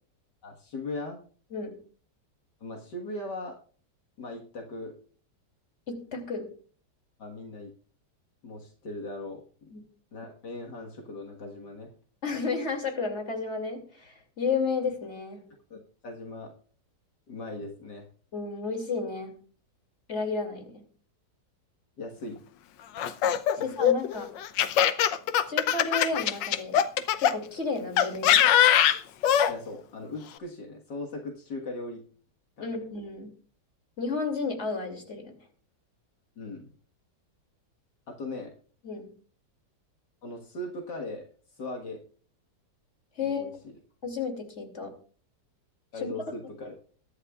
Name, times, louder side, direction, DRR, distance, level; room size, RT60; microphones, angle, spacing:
voice 1, 0.4-1.2 2.6-3.6 4.2-4.9 7.2-7.7 8.4-9.7 10.1-11.9 15.7-16.5 17.3-18.1 22.0-22.4 23.6-23.7 29.5-32.0 32.6-32.7 36.4-36.7 38.1-38.5 40.2-41.3 41.5-42.0 43.2-43.7 45.9-46.8, left 2 dB, 70° left, 1 dB, 2.2 m, -39 dB
voice 2, 5.9-6.5 9.7-9.8 12.2-15.4 18.3-19.3 20.1-20.8 23.5-24.3 25.5-26.8 27.2-28.5 32.6-33.3 34.0-35.3 38.8-39.1 43.2-43.5 44.0-44.9 46.0-46.1, left 4 dB, 40° left, 4 dB, 3.0 m, -32 dB
Laughter, 23.0-27.3 28.0-29.5, left 10 dB, 90° left, 1.4 m, -22 dB
22.5 x 11.0 x 2.4 m, 0.42 s
omnidirectional pair, 1.9 m